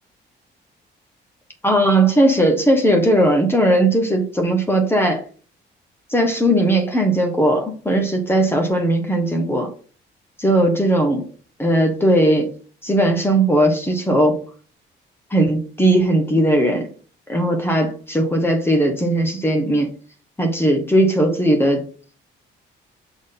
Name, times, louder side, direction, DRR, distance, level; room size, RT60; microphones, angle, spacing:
voice 1, 1.6-5.2 6.1-9.7 10.4-11.3 11.6-12.5 12.8-14.4 15.3-16.9 17.3-19.9 20.4-21.8, right 1 dB, 10° left, 3 dB, 1.3 m, -18 dB
6.2 x 4.0 x 3.8 m, 0.41 s
cardioid pair, 90°, 20 cm